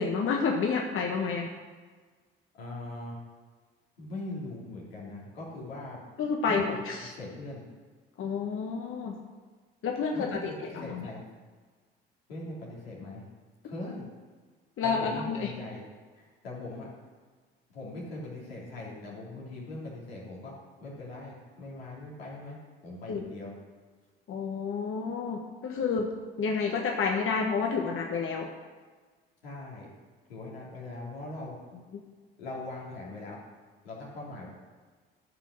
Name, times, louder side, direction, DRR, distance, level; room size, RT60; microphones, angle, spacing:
voice 1, 0.0-1.5 6.2-7.1 8.2-9.2 9.8-10.4 10.7-11.1 14.8-15.5 23.1-23.2 24.3-26.1 26.4-28.5, left 5 dB, 45° left, 1 dB, 1.4 m, -29 dB
voice 2, 2.5-3.2 4.0-6.0 6.4-7.6 10.1-11.2 12.3-13.3 13.6-14.1 14.8-15.8 16.1-16.9 17.7-20.5 20.8-22.6 22.8-23.5 29.4-29.9 30.3-31.6 32.4-33.4 33.8-34.5, left 2 dB, 80° left, -4 dB, 3.1 m, -40 dB
13.5 x 5.7 x 6.3 m, 1.4 s
figure-of-eight pair, 50°, 29 cm